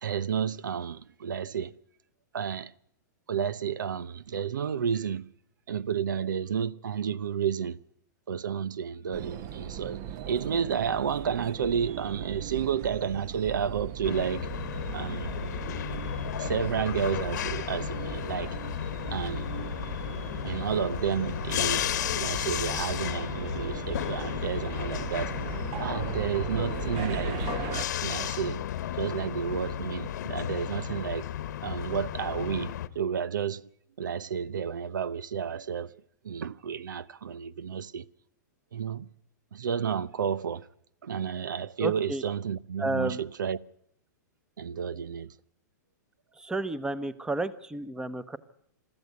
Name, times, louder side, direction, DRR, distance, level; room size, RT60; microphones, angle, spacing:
voice 1, 0.0-1.7 2.3-2.7 3.3-5.3 5.7-7.8 8.3-14.5 14.9-15.3 16.4-18.6 19.1-19.5 20.4-21.9 22.1-25.3 25.8-27.4 28.0-28.6 29.0-31.3 31.6-33.7 34.0-36.0 36.2-38.1 38.7-39.1 39.5-40.7 41.0-43.6 44.6-45.3, right 7 dB, 90° right, 0.7 m, -31 dB
sound 1, 9.1-27.8, right 9 dB, 45° right, 1.0 m, -38 dB
sound 2, 14.0-32.9, left 11 dB, 70° left, 1.2 m, -33 dB
voice 2, 41.8-42.2 42.8-43.2 46.4-48.4, right 2 dB, 5° right, 0.9 m, -31 dB
21.5 x 13.5 x 9.4 m
hypercardioid pair, 130°, 10 cm